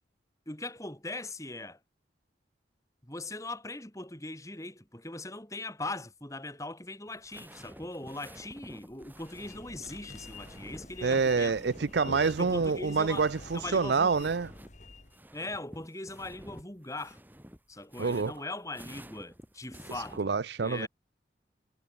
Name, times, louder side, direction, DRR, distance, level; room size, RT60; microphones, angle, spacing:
voice 1, 0.5-1.8 3.0-11.6 12.4-13.3 13.5-14.3 15.3-17.2 17.7-20.3 20.6-20.9, left 2 dB, 15° left, 3.1 m, -40 dB
sound 1, 7.1-14.7 15.0-20.2, equal, 10° right, 4.2 m, -50 dB
sound 2, 8.9-13.9, left 1 dB, 65° left, 4.9 m, -50 dB
sound 3, 9.3-15.2, left 3 dB, 40° left, 2.9 m, -49 dB
voice 2, 11.0-14.5 18.0-18.3 20.2-20.9, right 4 dB, 70° right, 0.5 m, -27 dB
head